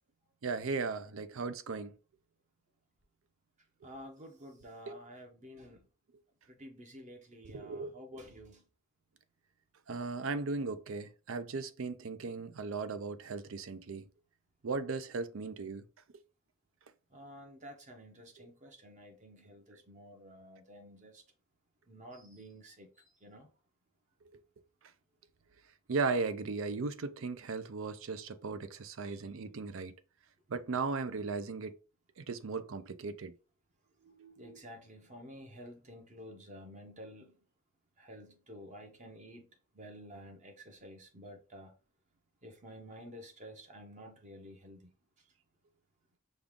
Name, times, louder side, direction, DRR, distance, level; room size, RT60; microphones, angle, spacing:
voice 1, 0.4-2.0 4.9-5.0 7.5-7.9 9.9-14.0 14.6-15.8 18.4-18.5 25.9-29.9 30.5-31.8 32.2-33.3, right 4 dB, 70° right, 0.5 m, -37 dB
voice 2, 3.8-5.9 6.5-8.6 17.1-21.2 21.9-23.5 29.0-29.2 34.0-37.4 38.0-39.5 39.7-41.7 42.4-44.9, equal, 35° right, 0.9 m, -51 dB
5.3 x 2.4 x 3.6 m
head